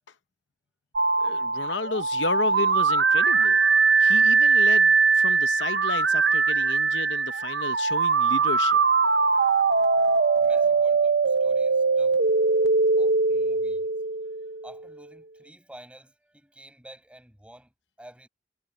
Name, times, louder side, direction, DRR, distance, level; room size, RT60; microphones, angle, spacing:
sound 1, 1.0-14.8, right 4 dB, 60° right, 0.7 m, -21 dB
voice 1, 1.2-3.6 4.0-8.8, left 4 dB, 75° left, 0.9 m, -33 dB
voice 2, 10.4-12.2 13.0-18.3, right 1 dB, 5° right, 6.3 m, -51 dB
head